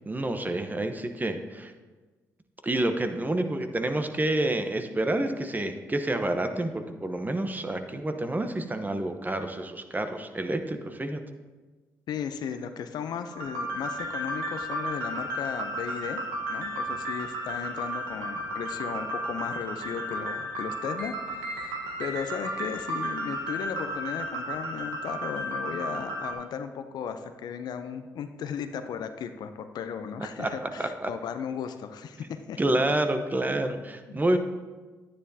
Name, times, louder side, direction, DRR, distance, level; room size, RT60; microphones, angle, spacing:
voice 1, 0.1-1.7 2.6-11.2 30.4-30.5 30.8-31.1 32.6-34.4, right 1 dB, 25° right, 7 dB, 1.0 m, -28 dB
voice 2, 12.1-16.2 16.5-32.6 34.1-34.4, left 7 dB, 70° left, 9 dB, 0.6 m, -36 dB
sound 1, 13.3-26.3, right 1 dB, 90° right, 1.2 m, -33 dB
10.5 x 9.9 x 2.8 m, 1.3 s
hypercardioid pair, 45°, 7 cm